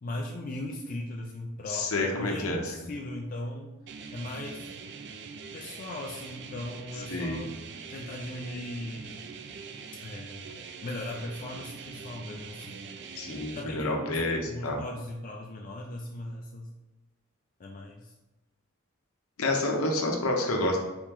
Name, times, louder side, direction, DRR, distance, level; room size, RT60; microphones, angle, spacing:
voice 1, 0.0-4.7 5.5-7.5 7.9-9.2 10.0-12.8 13.5-14.2 14.5-16.7 17.6-18.1, left 1 dB, 40° left, 0 dB, 0.4 m, -38 dB
voice 2, 1.7-2.6 7.1-7.5 13.2-14.8 19.4-20.8, left 2 dB, 85° left, 1 dB, 0.8 m, -28 dB
sound 1, 3.9-13.6, right 5 dB, 55° right, 0.3 m, -43 dB
4.3 x 3.0 x 3.6 m, 1.1 s
head